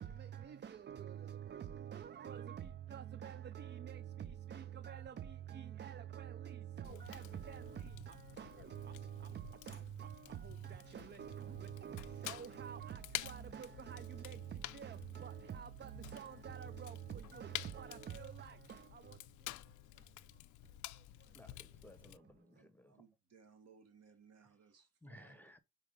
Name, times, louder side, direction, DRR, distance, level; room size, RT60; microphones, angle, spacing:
voice 1, 0.0-19.5 19.9-20.1 21.0-21.3, right 9 dB, 35° right, 0.5 m, -47 dB
Fire, 6.8-22.2, left 15 dB, 80° left, 0.5 m, -50 dB
voice 2, 21.3-23.0 25.0-25.6, equal, 5° left, 0.9 m, -59 dB
voice 3, 22.5-25.5, right 6 dB, 55° right, 1.7 m, -64 dB
4.8 x 4.5 x 5.3 m
cardioid pair, 90°, 30 cm